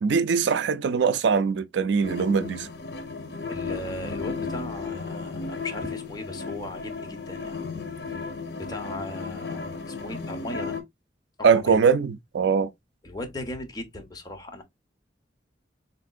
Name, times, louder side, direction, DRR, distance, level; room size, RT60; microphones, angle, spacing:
voice 1, 0.0-2.7 11.4-12.7, right 6 dB, 80° right, 0.4 m, -22 dB
sound 1, 2.0-10.8, left 4 dB, 60° left, 1.0 m, -34 dB
voice 2, 3.5-7.6 8.1-8.3 8.5-10.8 11.5-11.8 13.0-14.6, left 1 dB, 20° left, 1.0 m, -37 dB
4.3 x 3.5 x 2.4 m
head